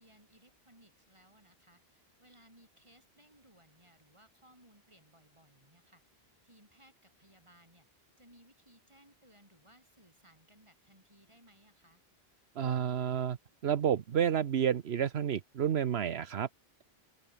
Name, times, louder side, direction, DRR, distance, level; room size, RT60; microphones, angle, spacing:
voice 1, 0.0-12.0, right 1 dB, 25° right, 8.0 m, -63 dB
voice 2, 12.6-13.4 13.6-16.5, right 9 dB, 75° right, 1.1 m, -30 dB
open air
omnidirectional pair, 1.1 m